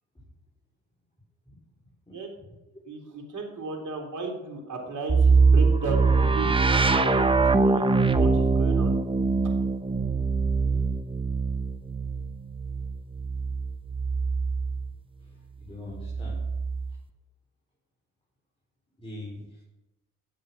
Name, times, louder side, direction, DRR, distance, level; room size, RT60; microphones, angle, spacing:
voice 1, 2.1-2.5 2.7-2.8 15.2-16.4 19.0-19.6, left 2 dB, 15° left, -5 dB, 5.2 m, -43 dB
voice 2, 2.9-7.8 8.1-8.9, right 3 dB, 50° right, 0 dB, 3.6 m, -35 dB
sound 1, 5.1-14.9 15.9-17.0, right 4 dB, 15° right, 1.0 m, -23 dB
13.0 x 7.9 x 6.0 m, 1.0 s
hypercardioid pair, 50°, 38 cm